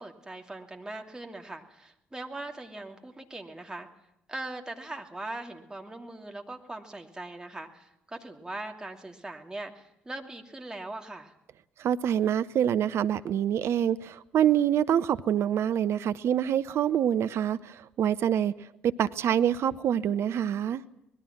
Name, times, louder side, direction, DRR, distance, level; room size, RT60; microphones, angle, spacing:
voice 1, 0.0-3.9 4.3-11.3, right 2 dB, 15° right, 3 dB, 2.8 m, -40 dB
voice 2, 11.8-20.8, right 9 dB, 50° right, 14 dB, 0.7 m, -26 dB
25.5 x 20.0 x 6.0 m, 0.82 s
figure-of-eight pair, 45°, 6 cm